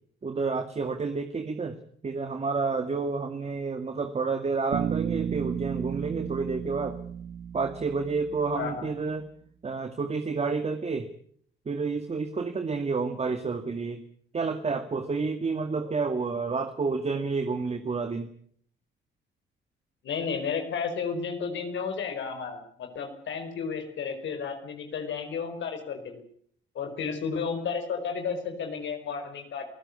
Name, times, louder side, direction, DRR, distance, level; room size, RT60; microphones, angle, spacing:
voice 1, 0.2-1.8 2.0-7.0 7.5-9.2 9.6-11.1 11.7-14.0 14.3-18.3, right 4 dB, 30° right, 7 dB, 2.1 m, -29 dB
Bass guitar, 4.7-8.8, right 9 dB, 70° right, 1.4 m, -33 dB
voice 2, 8.5-8.9 20.0-26.2 26.7-29.7, left 6 dB, 70° left, 6 dB, 4.8 m, -32 dB
28.5 x 16.0 x 8.4 m, 0.64 s
cardioid pair, 90°, 20 cm